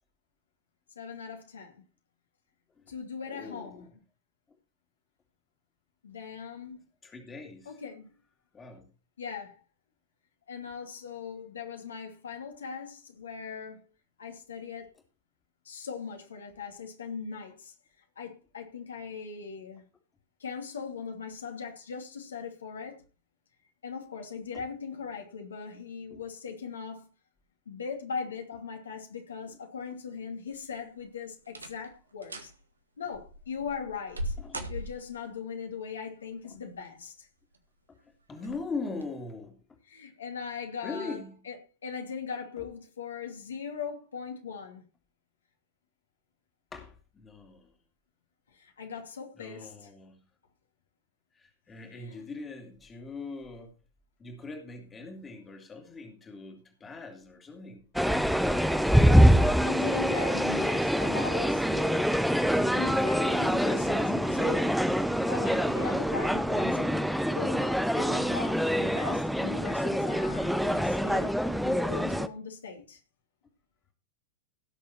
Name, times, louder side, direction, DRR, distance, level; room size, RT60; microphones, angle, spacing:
voice 1, 1.0-1.8 2.9-3.9 6.0-6.8 7.6-8.1 9.2-9.6 10.5-13.8 14.2-14.9 15.6-17.7 18.2-19.8 20.4-23.0 23.8-27.1 27.7-32.5 33.0-34.3 34.7-37.3 39.9-41.6 41.8-44.8 48.5-49.9 51.9-52.2 59.3-62.1 62.7-64.7 65.3-66.9 67.3-71.4 71.6-73.0, left 6 dB, 70° left, 2.8 m, -39 dB
voice 2, 3.2-3.9 7.0-7.8 8.5-8.9 26.1-26.2 34.4-34.7 36.4-36.6 37.9-38.0 38.3-39.6 40.8-41.4 46.7-47.7 49.4-50.2 51.3-53.7 54.2-57.9 59.5-59.6 64.0-64.1 69.4-69.5, left 3 dB, 20° left, 2.7 m, -41 dB
sound 1, 30.5-31.0 31.5-31.9 32.2-32.5 33.1-35.3 36.5-37.1 37.5-37.6 38.4-38.6 39.0-39.1, right 1 dB, 75° right, 1.8 m, -39 dB
sound 2, 58.0-72.3, equal, ahead, 0.8 m, -25 dB
17.5 x 6.9 x 4.4 m
figure-of-eight pair, 90°, 0 cm